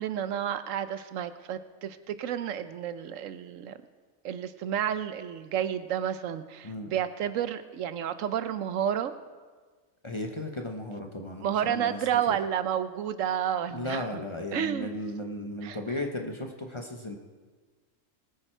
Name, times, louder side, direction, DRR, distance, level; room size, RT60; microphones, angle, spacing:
voice 1, 0.0-3.8 4.2-9.1 11.4-14.0 14.5-14.9 15.6-15.8, right 9 dB, 75° right, 12 dB, 1.0 m, -30 dB
voice 2, 10.0-12.0 12.3-12.4 13.7-17.2, left 1 dB, 25° left, 3 dB, 0.8 m, -35 dB
20.0 x 9.1 x 4.5 m, 1.4 s
omnidirectional pair, 1.4 m